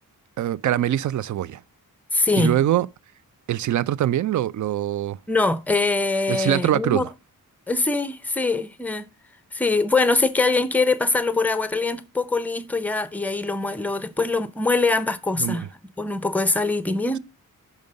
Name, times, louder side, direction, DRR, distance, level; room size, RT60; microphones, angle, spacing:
voice 1, 0.4-1.6 2.4-2.9 3.5-5.2 6.3-7.1 15.4-15.6, right 12 dB, 60° right, 0.5 m, -23 dB
voice 2, 2.1-2.5 5.3-7.1 7.7-9.1 9.5-15.7 16.0-17.2, left 3 dB, 5° left, 0.5 m, -23 dB
6.1 x 5.4 x 6.4 m
wide cardioid pair, 135°, 34 cm